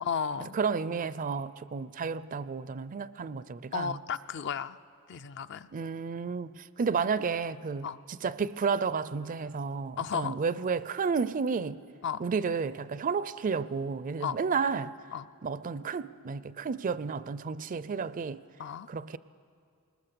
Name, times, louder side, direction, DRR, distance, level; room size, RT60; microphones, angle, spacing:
voice 1, 0.0-0.6 3.7-4.8 5.1-5.7 7.8-8.0 10.0-10.3 12.0-12.2 14.2-14.4 15.1-15.3 18.6-18.9, left 7 dB, 55° left, 0.5 m, -33 dB
voice 2, 0.5-4.0 5.7-7.9 8.2-11.8 12.2-14.9 15.4-18.4 18.9-19.2, right 5 dB, 40° right, 0.4 m, -31 dB
20.5 x 20.0 x 6.9 m
head